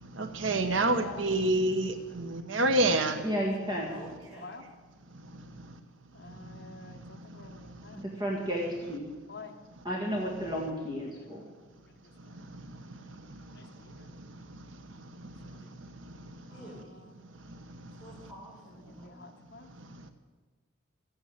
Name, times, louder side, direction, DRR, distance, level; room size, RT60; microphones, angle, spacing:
voice 1, 0.2-3.2, right 2 dB, 75° right, 8 dB, 1.0 m, -27 dB
voice 2, 0.9-1.2 2.8-3.0 4.3-4.6 6.1-8.0 9.3-9.6 13.5-14.1 15.4-15.6 16.5-16.7 18.9-19.7, left 4 dB, 55° left, 6 dB, 0.9 m, -47 dB
voice 3, 3.2-3.9 7.9-9.1 9.8-11.4, equal, 20° right, -3 dB, 2.0 m, -32 dB
voice 4, 3.8-4.6 16.5-16.9 18.0-19.2, right 1 dB, 5° right, -7 dB, 6.6 m, -49 dB
14.5 x 9.0 x 8.9 m, 1.3 s
head